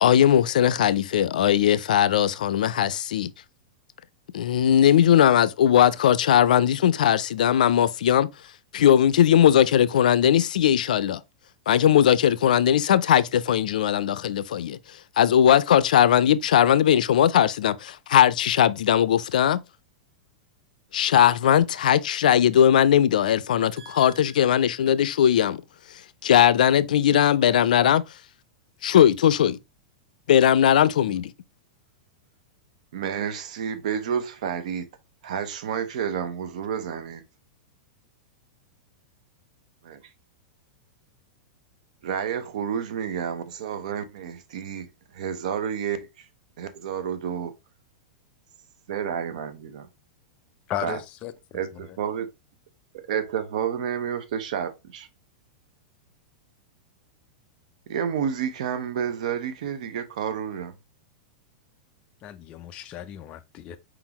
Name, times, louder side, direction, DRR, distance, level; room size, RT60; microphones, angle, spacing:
voice 1, 0.0-3.3 4.3-8.3 8.7-11.2 11.7-14.8 15.2-19.6 20.9-25.6 26.2-28.0 28.8-29.6 30.3-31.3, left 10 dB, 85° left, 0.4 m, -19 dB
voice 2, 23.8-24.2 31.1-31.2 32.9-34.9 35.2-37.2 39.8-40.0 42.0-46.3 46.6-47.5 48.9-49.9 50.8-51.0 51.5-52.3 53.0-55.1 57.9-60.7, right 8 dB, 65° right, 0.8 m, -30 dB
voice 3, 50.7-51.3 62.2-63.8, left 11 dB, 25° left, 0.4 m, -35 dB
4.6 x 3.9 x 2.9 m
supercardioid pair, 160°, 4 cm